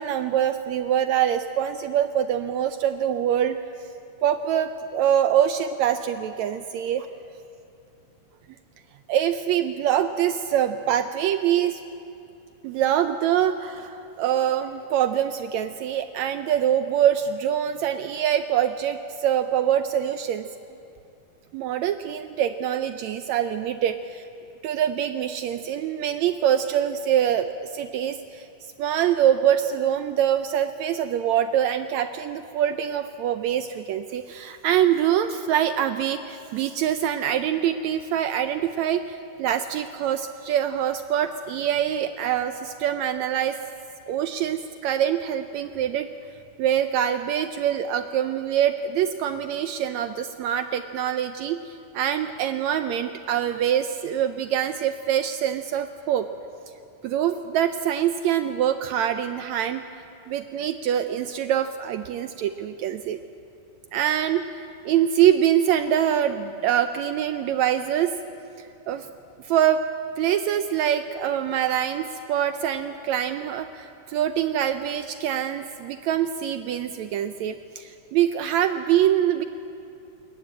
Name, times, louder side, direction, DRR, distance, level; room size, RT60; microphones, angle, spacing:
voice 1, 0.0-3.6 4.2-7.1 9.1-11.8 12.6-20.5 21.5-24.2 24.6-28.4 28.8-43.6 44.1-46.1 46.6-56.3 57.0-59.8 60.3-63.2 63.9-68.1 68.9-69.1 69.4-69.8 70.2-79.5, right 10 dB, 85° right, 9 dB, 1.6 m, -24 dB
21.5 x 19.0 x 8.8 m, 2.6 s
omnidirectional pair, 3.9 m